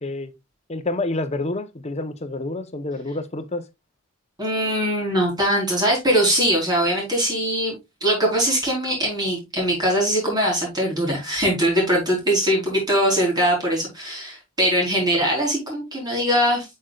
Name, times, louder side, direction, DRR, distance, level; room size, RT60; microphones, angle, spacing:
voice 1, 0.0-0.3 0.7-3.6, left 2 dB, 30° left, 0.9 m, -28 dB
voice 2, 4.4-16.6, equal, 20° right, 4.3 m, -21 dB
8.2 x 6.5 x 2.4 m
head